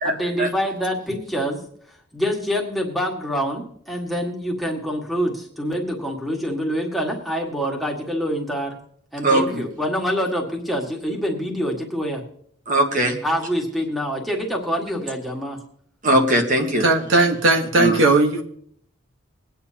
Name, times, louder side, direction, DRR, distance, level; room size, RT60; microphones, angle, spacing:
voice 1, 0.0-1.6 1.9-8.8 9.1-12.2 13.2-15.6, equal, ahead, -1 dB, 1.8 m, -26 dB
voice 2, 9.2-9.6 12.7-13.2 16.0-16.8 17.8-18.0, right 1 dB, 40° right, 3 dB, 1.5 m, -19 dB
voice 3, 16.8-18.4, right 2 dB, 65° right, 4 dB, 1.3 m, -17 dB
22.0 x 9.5 x 2.9 m, 0.64 s
head